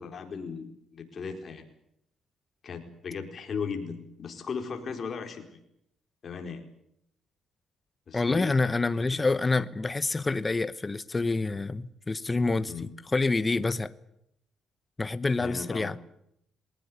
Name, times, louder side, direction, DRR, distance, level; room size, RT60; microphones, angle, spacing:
voice 1, 0.0-1.7 2.6-5.6 6.2-6.6 8.1-8.7 9.2-9.4 12.7-12.9 15.4-15.9, left 5 dB, 50° left, 4.5 m, -37 dB
voice 2, 8.1-12.7 13.1-13.9 15.0-16.0, left 3 dB, 25° left, 1.1 m, -27 dB
21.0 x 18.5 x 9.6 m
cardioid pair, 90°, 0 cm